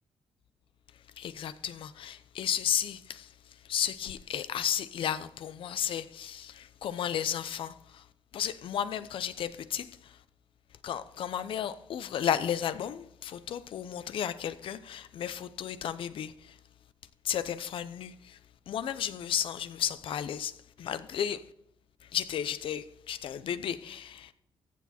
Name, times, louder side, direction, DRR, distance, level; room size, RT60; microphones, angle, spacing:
voice 1, 1.2-8.1 8.3-10.2 10.8-16.6 17.2-18.4 18.7-21.5 22.0-24.3, left 9 dB, 75° left, 0.7 m, -33 dB
14.0 x 7.1 x 4.3 m
cardioid pair, 95°, 9 cm